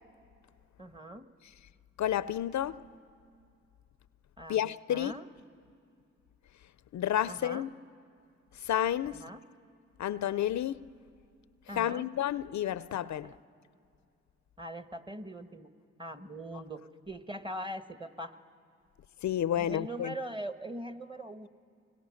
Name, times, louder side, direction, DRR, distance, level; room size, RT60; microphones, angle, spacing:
voice 1, 0.8-1.3 4.4-4.6 4.9-5.3 7.3-7.7 9.1-9.4 11.7-12.1 13.2-13.4 14.6-15.7 16.0-18.4 19.6-21.5, right 1 dB, 15° right, 1.2 m, -41 dB
voice 2, 2.0-2.8 4.5-5.1 6.9-7.7 8.6-9.2 10.0-10.8 11.8-13.3 19.2-20.1, left 11 dB, 70° left, 0.5 m, -30 dB
24.5 x 22.5 x 6.4 m
cardioid pair, 50°, 30 cm